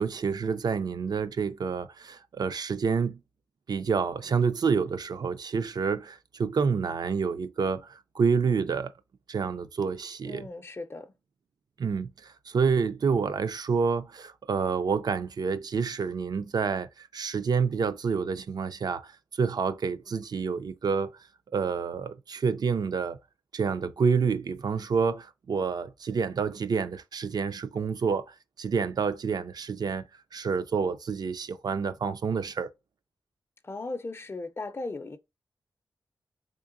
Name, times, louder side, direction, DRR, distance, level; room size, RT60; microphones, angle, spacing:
voice 1, 0.0-3.2 3.7-8.9 9.3-10.5 11.8-21.1 21.5-23.2 23.5-30.0 30.3-32.7, right 5 dB, 55° right, 0.4 m, -28 dB
voice 2, 10.2-11.1 33.6-35.2, left 3 dB, 30° left, 0.4 m, -37 dB
3.7 x 3.2 x 2.5 m
wide cardioid pair, 115°, 8 cm